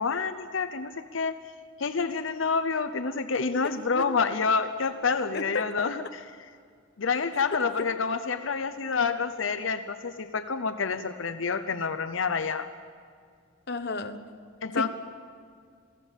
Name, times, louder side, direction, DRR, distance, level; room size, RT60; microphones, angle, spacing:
voice 1, 0.0-1.4 1.8-6.2 7.0-12.7 14.6-14.9, left 5 dB, 85° left, 8 dB, 0.8 m, -28 dB
voice 2, 13.7-14.2 14.8-14.9, left 3 dB, 55° left, 8 dB, 1.2 m, -32 dB
28.5 x 17.0 x 7.4 m, 2.1 s
head